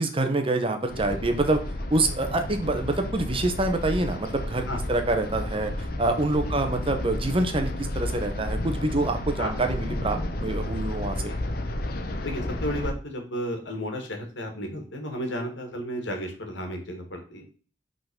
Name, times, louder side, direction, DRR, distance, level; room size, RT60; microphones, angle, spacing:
voice 1, 0.0-1.6 1.9-11.2, right 2 dB, 30° right, 6 dB, 0.9 m, -26 dB
sound 1, 0.9-12.9, left 1 dB, 55° left, 0.9 m, -32 dB
voice 2, 12.2-17.4, equal, 85° left, 4 dB, 1.8 m, -33 dB
5.8 x 3.9 x 5.2 m, 0.40 s
head